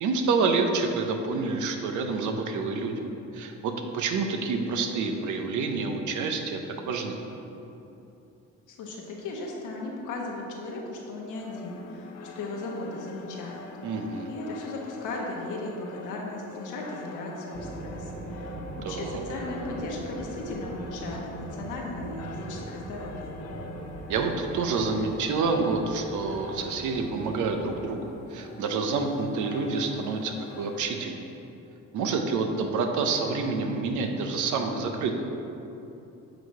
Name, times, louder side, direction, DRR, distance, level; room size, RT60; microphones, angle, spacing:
voice 1, 0.0-3.1 3.3-6.6 6.9-7.2 13.8-14.3 18.8-19.2 24.1-31.3 31.9-35.1, right 4 dB, 80° right, 4 dB, 0.8 m, -28 dB
voice 2, 8.7-12.1 12.3-13.6 14.3-18.6 18.9-23.3, left 2 dB, 85° left, -1 dB, 1.3 m, -36 dB
sound 1, 11.4-30.9, left 4 dB, 60° left, 0.6 m, -45 dB
sound 2, 17.5-27.9, right 2 dB, 25° right, 0.7 m, -40 dB
7.9 x 4.1 x 4.7 m, 2.9 s
cardioid pair, 90°, 30 cm